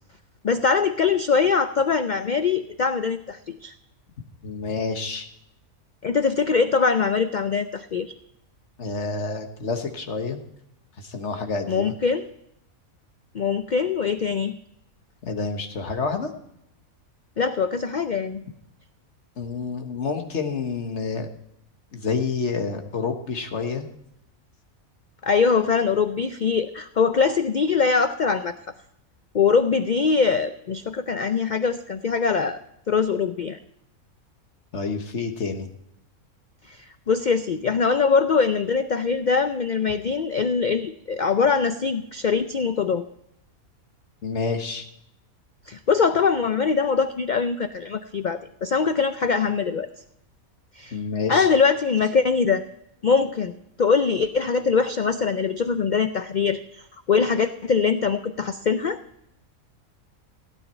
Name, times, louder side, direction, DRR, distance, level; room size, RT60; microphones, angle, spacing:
voice 1, 0.4-3.7 6.0-8.1 11.7-12.3 13.3-14.6 17.4-18.4 25.2-28.6 29.3-32.6 32.9-33.6 36.7-43.0 45.7-49.9 50.8-51.0 51.3-52.6 53.0-53.5 53.8-56.8 57.1-59.0, left 5 dB, 70° left, 10 dB, 0.4 m, -22 dB
voice 2, 4.4-5.3 8.8-10.4 11.0-11.9 15.3-16.3 19.4-21.3 21.9-23.9 34.7-35.7 44.2-44.8 50.9-51.5, left 4 dB, 55° left, 6 dB, 1.5 m, -28 dB
16.5 x 9.2 x 4.3 m, 0.78 s
omnidirectional pair, 1.5 m